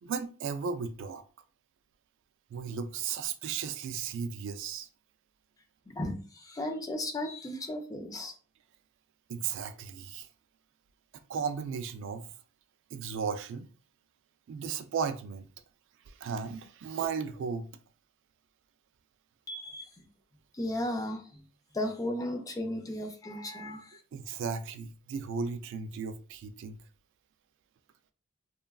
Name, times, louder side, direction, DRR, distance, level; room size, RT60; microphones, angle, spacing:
voice 1, 0.0-1.2 2.5-4.9 9.3-10.3 11.3-12.3 12.9-13.7 14.5-15.5 16.1-17.7 24.1-26.8, right 6 dB, 60° right, 0.3 m, -35 dB
voice 2, 5.9-8.3 19.5-20.1 20.5-21.4 21.7-24.0, left 1 dB, 15° left, 0.4 m, -35 dB
3.0 x 2.3 x 2.3 m
head